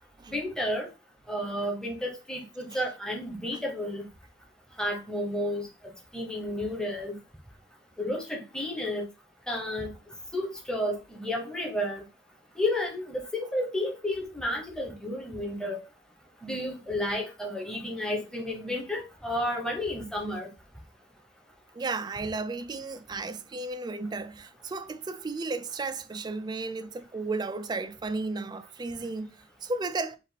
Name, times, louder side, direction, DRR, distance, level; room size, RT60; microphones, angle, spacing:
voice 1, 0.3-0.9 1.3-4.0 4.8-5.7 6.1-7.1 8.0-9.0 9.5-9.9 10.3-12.0 12.6-15.8 16.4-20.5, left 1 dB, 5° left, 1.1 m, -31 dB
voice 2, 21.7-30.2, right 3 dB, 20° right, 0.3 m, -34 dB
5.1 x 2.5 x 4.1 m
head